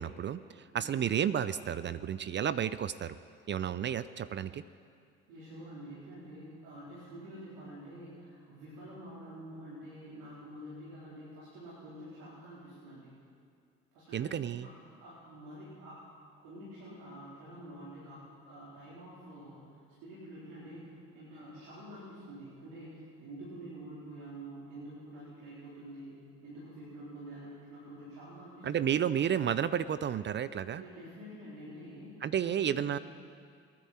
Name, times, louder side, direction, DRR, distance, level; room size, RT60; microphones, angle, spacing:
voice 1, 0.0-3.2 3.5-4.6 14.1-14.7 28.6-30.8 32.2-33.0, right 9 dB, 40° right, 15 dB, 0.5 m, -32 dB
voice 2, 0.7-1.1 5.3-13.1 13.9-14.7 15.0-16.0 16.4-19.7 20.0-26.2 26.4-28.9 30.8-33.0, right 1 dB, 85° right, -10 dB, 4.1 m, -48 dB
27.0 x 9.9 x 4.4 m, 2.2 s
supercardioid pair, 75°, 29 cm